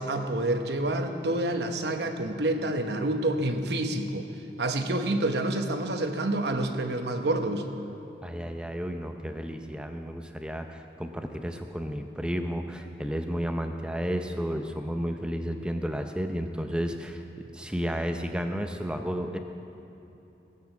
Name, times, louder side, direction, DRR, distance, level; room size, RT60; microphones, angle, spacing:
voice 1, 0.0-4.3 4.6-7.7, right 1 dB, 75° right, 6 dB, 1.0 m, -28 dB
voice 2, 8.2-19.4, equal, 5° right, 6 dB, 0.6 m, -32 dB
17.0 x 8.5 x 5.8 m, 2.9 s
head